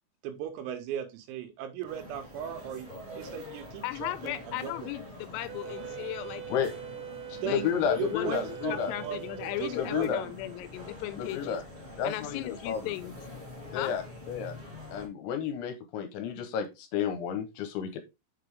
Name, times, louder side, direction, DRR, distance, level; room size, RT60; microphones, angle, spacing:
voice 1, 0.2-2.9 3.2-4.9 7.4-7.7 7.9-10.4, right 10 dB, 90° right, 4.2 m, -37 dB
sound 1, 1.8-15.1, left 1 dB, 35° right, 1.0 m, -46 dB
voice 2, 3.8-6.4 7.4-8.4 8.7-11.6 12.0-13.2 13.7-13.9, left 15 dB, 90° left, 3.3 m, -36 dB
Wind instrument woodwind instrument, 5.5-10.0, right 9 dB, 75° right, 2.0 m, -42 dB
voice 3, 7.3-8.9 9.7-10.2 11.2-11.6 12.0-12.9 13.7-14.5 14.9-18.0, left 8 dB, 75° left, 3.1 m, -31 dB
7.5 x 6.0 x 3.5 m
omnidirectional pair, 6.0 m